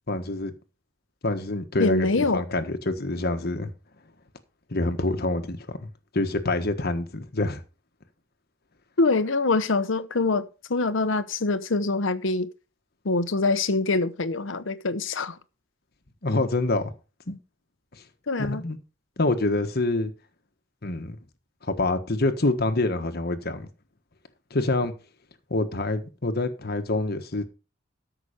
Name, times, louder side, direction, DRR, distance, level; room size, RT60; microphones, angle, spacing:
voice 1, 0.1-0.5 1.2-3.7 4.7-5.9 6.1-7.6 16.2-16.9 17.3-17.4 18.4-18.8 19.2-20.1 20.8-21.2 21.6-23.7 24.5-24.9 25.5-27.4, left 2 dB, 55° left, 1.4 m, -26 dB
voice 2, 1.8-2.4 9.0-12.5 13.0-15.4 18.3-18.6, left 3 dB, 75° left, 0.9 m, -24 dB
13.0 x 6.0 x 5.1 m
head